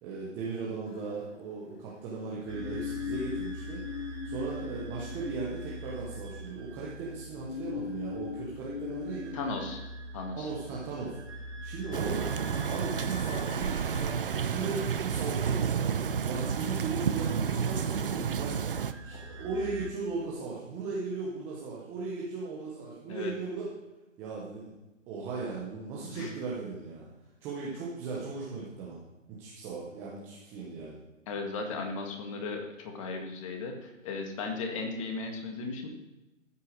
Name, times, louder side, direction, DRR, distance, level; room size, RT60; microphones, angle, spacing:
voice 1, 0.0-3.8 4.2-9.3 10.3-11.2 11.6-12.3 12.6-23.7 24.2-24.8 25.1-27.1 27.4-29.0 29.3-31.0, right 4 dB, 5° right, -5 dB, 0.7 m, -37 dB
sound 1, 0.8-1.9 2.5-6.5 7.4-9.8, left 7 dB, 45° left, 0.9 m, -40 dB
sound 2, 2.5-19.9, equal, 60° right, 2.5 m, -44 dB
voice 2, 9.3-9.8 10.1-10.5 23.1-23.3 26.1-26.3 31.3-35.9, left 3 dB, 25° left, 4 dB, 1.8 m, -36 dB
sound 3, 11.9-18.9, right 7 dB, 45° right, 0.8 m, -31 dB
13.5 x 8.4 x 6.4 m, 1.0 s
figure-of-eight pair, 150°, 40 cm